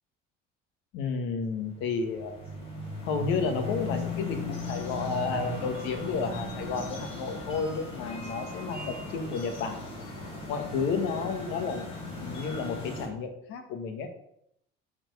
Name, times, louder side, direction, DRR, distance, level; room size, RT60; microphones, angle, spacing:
voice 1, 0.9-2.4 3.0-9.8 10.5-11.8 12.2-14.1, left 5 dB, 70° left, 5 dB, 1.6 m, -32 dB
sound 1, 1.4-13.1, left 2 dB, 30° left, 2.3 m, -37 dB
8.8 x 4.5 x 6.7 m, 0.75 s
cardioid pair, 180°, 20 cm